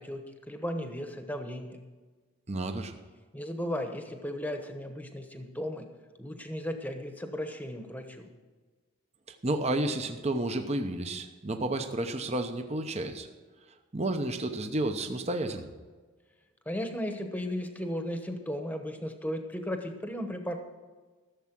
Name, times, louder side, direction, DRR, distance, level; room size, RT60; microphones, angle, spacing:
voice 1, 0.0-1.8 3.3-5.9 6.2-8.3 16.7-20.6, equal, 10° left, 5 dB, 1.0 m, -35 dB
voice 2, 2.5-2.9 9.3-13.3 13.9-15.7, right 1 dB, 30° right, 6 dB, 0.8 m, -31 dB
14.5 x 7.4 x 6.0 m, 1.4 s
head